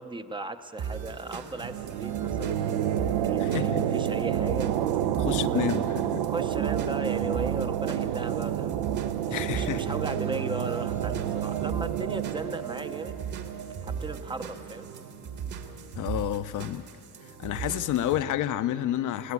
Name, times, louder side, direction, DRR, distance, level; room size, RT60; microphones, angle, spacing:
voice 1, 0.0-2.6 3.3-4.7 5.5-5.7 6.2-8.8 9.2-13.2 13.8-14.9, right 2 dB, 10° right, 9 dB, 0.7 m, -36 dB
sound 1, 0.8-18.2, right 6 dB, 50° right, 1.9 m, -38 dB
sound 2, 1.6-15.0, right 10 dB, 75° right, 1.0 m, -29 dB
voice 2, 3.4-4.0 5.2-6.3 9.3-10.0 15.9-16.9 17.4-19.3, left 12 dB, 50° left, 13 dB, 0.7 m, -30 dB
23.5 x 16.0 x 9.6 m, 2.7 s
cardioid pair, 140°, 40 cm